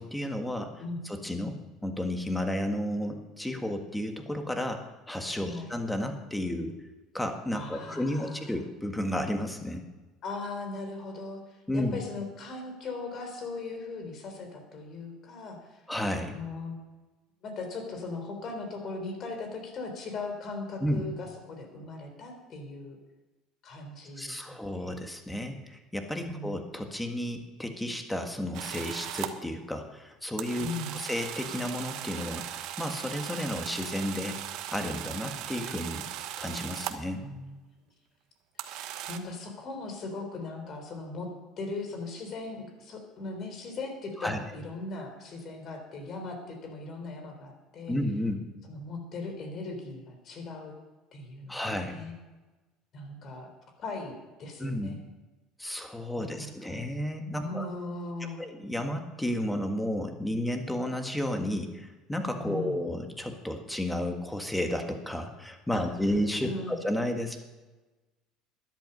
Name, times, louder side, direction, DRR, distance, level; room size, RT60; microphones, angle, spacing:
voice 1, 0.0-0.7 1.1-4.8 5.1-6.8 7.1-9.8 11.7-12.0 15.9-16.3 20.8-21.0 24.2-34.4 34.7-36.0 36.4-37.3 44.2-44.4 47.9-48.4 51.5-52.0 54.6-55.0 55.6-57.7 58.4-67.4, left 1 dB, 5° left, 5 dB, 1.7 m, -32 dB
voice 2, 5.4-5.7 7.5-8.7 10.2-15.8 16.2-16.8 17.4-23.0 23.6-25.0 26.2-26.6 30.6-31.0 37.2-37.6 38.6-41.3 41.6-47.9 48.7-50.7 51.1-51.6 51.8-52.1 52.9-53.5 53.8-55.0 56.2-56.9 57.4-58.4 62.4-62.8 65.7-65.9 66.4-66.8, left 3 dB, 45° left, 5 dB, 3.7 m, -39 dB
sound 1, 28.5-29.3 30.4-37.1 38.6-39.2, right 12 dB, 65° right, 1.1 m, -38 dB
12.5 x 11.0 x 5.4 m, 1.2 s
supercardioid pair, 115°, 0 cm